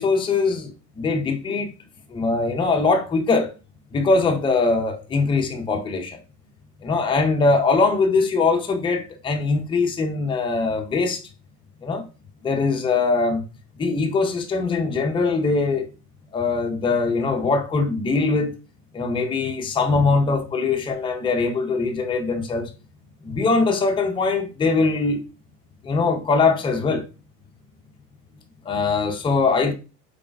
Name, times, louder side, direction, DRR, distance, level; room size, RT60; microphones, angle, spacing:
voice 1, 0.0-1.7 2.1-3.5 3.9-6.2 6.8-11.2 11.8-12.0 12.4-13.4 13.8-15.9 16.3-18.5 18.9-22.7 23.2-25.2 25.8-27.0 28.6-29.7, left 4 dB, 10° left, 0.6 m, -22 dB
4.0 x 3.8 x 2.4 m
hypercardioid pair, 100°, 49 cm